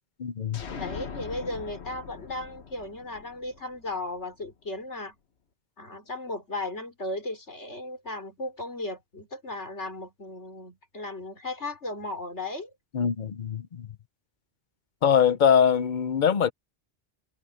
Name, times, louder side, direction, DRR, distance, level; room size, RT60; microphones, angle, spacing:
voice 1, 0.2-0.6 12.9-13.9 15.0-16.5, left 8 dB, 50° left, 0.8 m, -23 dB
sound 1, 0.5-4.2, left 5 dB, 70° left, 1.5 m, -41 dB
voice 2, 0.8-5.2 5.8-12.7, left 2 dB, 90° left, 5.3 m, -36 dB
omnidirectional pair, 1.1 m